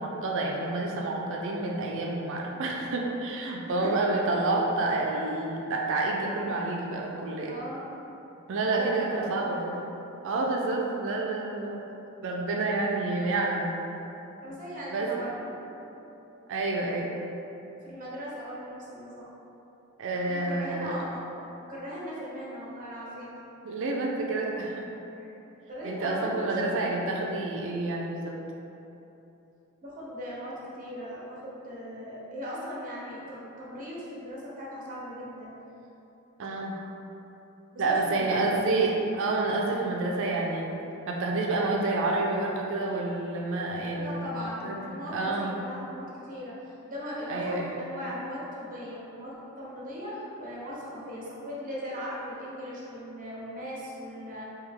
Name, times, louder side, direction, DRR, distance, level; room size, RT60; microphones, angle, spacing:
voice 1, 0.0-7.5 8.5-9.7 10.2-11.8 12.2-13.8 14.9-15.1 16.5-17.1 20.0-20.9 23.6-24.9 25.8-28.4 36.4-36.8 37.8-40.8 41.1-44.2 44.6-44.8 45.1-45.6 47.3-47.7, right 2 dB, 60° right, -1 dB, 0.4 m, -28 dB
voice 2, 7.5-7.9 8.7-9.7 14.4-15.9 17.8-19.2 20.3-21.2 21.7-23.3 25.2-25.3 25.7-26.9 29.8-35.5 37.7-38.6 44.0-54.4, equal, 40° right, -6 dB, 0.9 m, -39 dB
3.4 x 2.8 x 3.6 m, 3.0 s
head